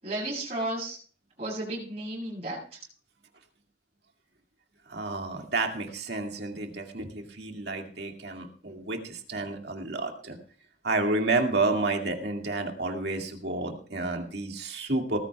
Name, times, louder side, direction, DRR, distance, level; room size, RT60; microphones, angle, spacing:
voice 1, 0.0-1.0 1.4-2.8, right 1 dB, 35° right, -4 dB, 7.9 m, -33 dB
voice 2, 4.9-10.4 10.8-15.2, right 2 dB, 65° right, 3 dB, 2.2 m, -30 dB
19.0 x 14.5 x 2.4 m, 0.40 s
head